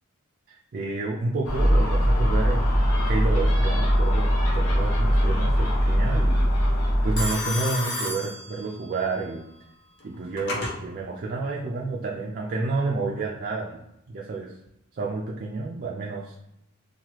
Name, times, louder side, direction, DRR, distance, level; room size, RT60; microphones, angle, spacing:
voice 1, 0.7-6.5 7.0-9.4 10.0-13.8 14.1-14.6 14.9-16.4, right 3 dB, 45° right, -2 dB, 0.4 m, -30 dB
Gull seagull, 1.4-7.3, equal, 90° left, 0.8 m, -21 dB
Telephone, 3.6-4.1 7.2-9.0 10.0-10.8, left 2 dB, 55° left, 0.7 m, -32 dB
3.1 x 2.3 x 2.9 m, 0.86 s
head